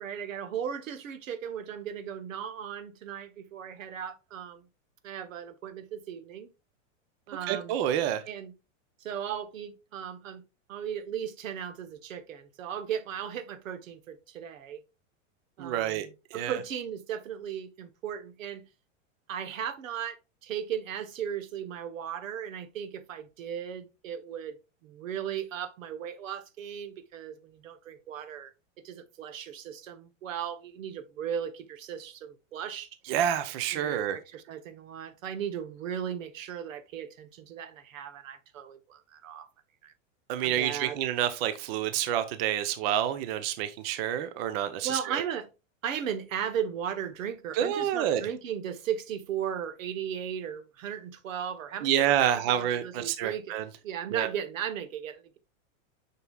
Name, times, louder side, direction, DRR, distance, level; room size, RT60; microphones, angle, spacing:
voice 1, 0.0-4.7 5.0-6.5 7.3-7.7 8.3-8.5 9.0-10.4 10.7-14.8 15.6-18.6 19.3-28.5 28.8-32.9 33.7-39.5 39.8-39.9 40.4-41.0 44.8-45.5 45.8-53.6 53.8-55.4, right 8 dB, 85° right, 1.2 m, -36 dB
voice 2, 7.5-8.2 15.6-16.6 33.1-34.2 40.3-45.2 47.5-48.2 51.8-53.7 54.1-54.3, right 10 dB, 50° right, 0.8 m, -28 dB
6.7 x 6.0 x 2.4 m
supercardioid pair, 145°, 39 cm